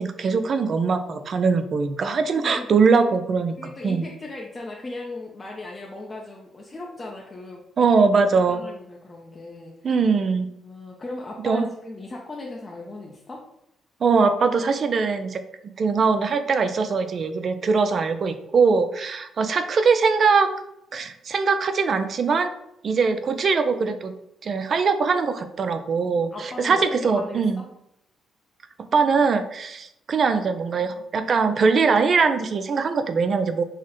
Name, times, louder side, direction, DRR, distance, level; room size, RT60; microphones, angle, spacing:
voice 1, 0.0-3.6 3.8-4.1 7.8-8.6 9.8-10.5 11.4-11.7 14.0-15.4 15.8-20.5 20.9-22.5 22.8-24.1 24.4-27.6 28.9-33.6, right 5 dB, 50° right, 9 dB, 0.4 m, -21 dB
voice 2, 2.3-2.7 3.6-7.6 8.5-9.7 10.6-13.5 26.3-27.7, left 2 dB, 25° left, -2 dB, 0.5 m, -37 dB
4.6 x 2.0 x 3.0 m, 0.79 s
cardioid pair, 90°, 0 cm